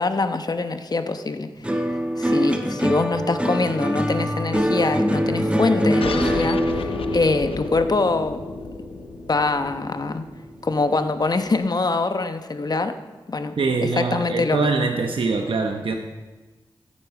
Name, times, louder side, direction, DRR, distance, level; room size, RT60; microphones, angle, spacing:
voice 1, 0.0-1.8 2.2-8.4 9.3-10.2 10.6-12.9 13.3-13.5 13.8-14.9, left 3 dB, 45° left, 8 dB, 0.9 m, -24 dB
sound 1, 1.6-10.1 10.4-11.1, equal, 10° right, 1.3 m, -24 dB
sound 2, 6.0-11.1, left 5 dB, 85° left, 0.6 m, -32 dB
voice 2, 13.6-16.0, right 4 dB, 70° right, 4 dB, 0.9 m, -23 dB
15.0 x 8.6 x 4.9 m, 1.2 s
cardioid pair, 60°, 9 cm